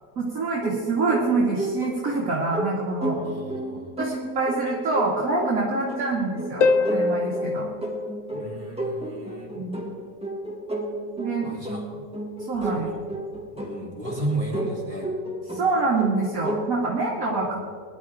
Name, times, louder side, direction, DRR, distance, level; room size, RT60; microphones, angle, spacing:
voice 1, 0.2-3.2 4.0-7.7 9.5-9.8 11.2-11.5 12.5-12.9 15.5-17.6, right 3 dB, 50° right, -5 dB, 2.7 m, -26 dB
sound 1, 0.6-16.7, right 1 dB, 5° right, 2.1 m, -32 dB
voice 2, 3.1-3.9 8.3-9.6 11.4-12.0 12.7-13.1 13.5-15.1 17.5-17.6, right 1 dB, 30° right, -3 dB, 3.3 m, -34 dB
Harp, 6.6-9.1 12.6-12.7, left 3 dB, 55° left, 1.1 m, -25 dB
21.5 x 11.5 x 3.7 m, 2.1 s
omnidirectional pair, 1.9 m